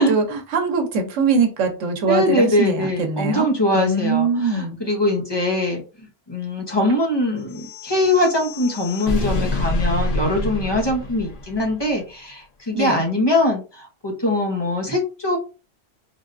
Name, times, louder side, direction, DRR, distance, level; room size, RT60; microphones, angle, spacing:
voice 1, 0.0-4.8 12.7-13.0, right 4 dB, 90° right, 1.1 m, -22 dB
voice 2, 2.0-5.8 6.3-15.4, left 1 dB, 25° left, 0.7 m, -22 dB
sound 1, 7.5-11.8, left 1 dB, 85° left, 1.1 m, -27 dB
3.4 x 2.3 x 2.4 m
omnidirectional pair, 1.2 m